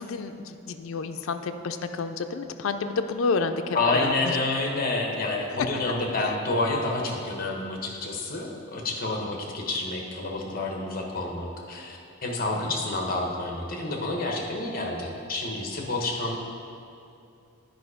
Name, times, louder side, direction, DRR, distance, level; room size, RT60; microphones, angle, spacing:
voice 1, 0.0-4.4 12.5-12.7, left 4 dB, 85° left, 7 dB, 0.4 m, -30 dB
voice 2, 3.7-16.5, left 2 dB, 45° left, 1 dB, 1.0 m, -29 dB
9.2 x 5.0 x 4.8 m, 2.6 s
head